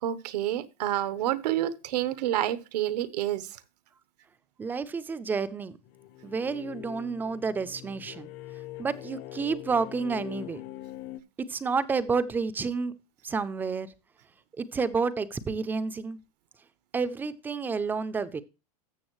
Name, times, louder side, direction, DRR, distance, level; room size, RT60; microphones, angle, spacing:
voice 1, 0.0-3.6, right 13 dB, 85° right, 1.0 m, -29 dB
voice 2, 4.6-5.8 6.2-8.3 8.8-10.6 11.5-12.9 13.2-13.9 14.6-16.2 16.9-18.4, right 5 dB, 10° right, 0.4 m, -30 dB
sound 1, 5.9-11.2, left 15 dB, 45° left, 0.6 m, -43 dB
13.5 x 7.0 x 3.0 m
supercardioid pair, 165°, 20 cm